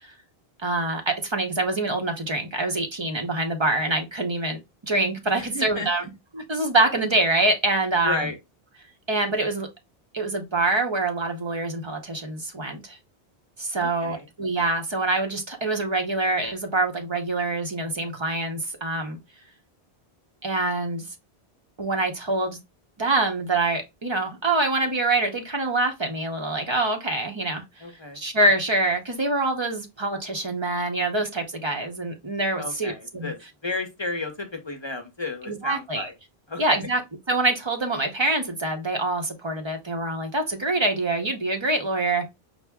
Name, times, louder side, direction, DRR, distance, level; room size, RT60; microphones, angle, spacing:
voice 1, 0.6-6.0 6.3-8.3 9.1-9.7 10.1-13.0 13.6-19.2 20.4-21.0 21.8-22.6 23.0-27.9 28.1-33.3 35.5-36.1 36.6-37.0 37.3-42.3, right 2 dB, 30° right, 0.7 m, -25 dB
voice 2, 5.4-6.1 8.0-8.3 13.8-14.3 27.8-28.2 32.6-33.4 33.6-36.1 36.5-36.8, left 3 dB, 30° left, 0.7 m, -33 dB
5.7 x 2.1 x 3.4 m
omnidirectional pair, 1.1 m